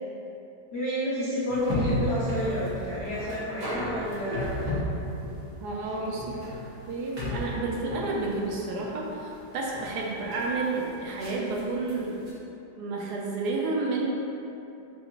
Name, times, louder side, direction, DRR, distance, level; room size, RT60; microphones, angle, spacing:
voice 1, 0.7-4.7 5.9-6.0, equal, 70° left, -8 dB, 0.6 m, -30 dB
sound 1, 1.5-12.3, equal, 30° right, 0.7 m, -34 dB
voice 2, 5.6-6.4 6.9-12.2 12.8-14.1, right 3 dB, 75° right, -2 dB, 1.1 m, -30 dB
5.1 x 2.4 x 2.9 m, 2.7 s
omnidirectional pair, 1.9 m